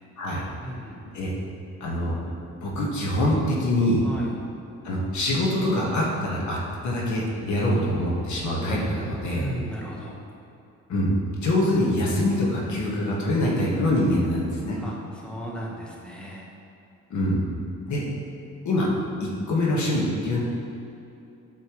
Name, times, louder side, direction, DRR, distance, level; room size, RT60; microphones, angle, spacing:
voice 1, 0.6-1.0 4.0-4.3 9.4-10.2 14.8-16.5, right 1 dB, 5° left, -4 dB, 1.4 m, -35 dB
voice 2, 1.8-2.2 2.6-4.1 4.8-6.6 6.8-9.5 10.9-11.1 11.4-14.8 17.1-17.4 17.8-18.1 18.6-18.9 19.2-20.4, left 1 dB, 70° left, -3 dB, 1.7 m, -24 dB
8.7 x 6.9 x 3.2 m, 2.7 s
cardioid pair, 90°, 30 cm